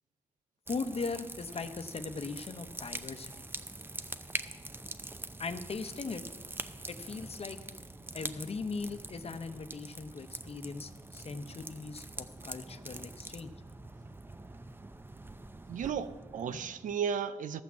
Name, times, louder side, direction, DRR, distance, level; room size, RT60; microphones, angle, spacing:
voice 1, 0.7-3.3 5.4-6.2 6.9-7.6 8.1-13.5 16.6-16.7, left 4 dB, 50° left, 0.8 m, -39 dB
sound 1, 0.7-16.9, right 2 dB, 15° right, 0.6 m, -44 dB
voice 2, 15.7-17.6, right 7 dB, 85° right, 0.5 m, -34 dB
13.5 x 5.9 x 7.4 m
cardioid pair, 80°, 13 cm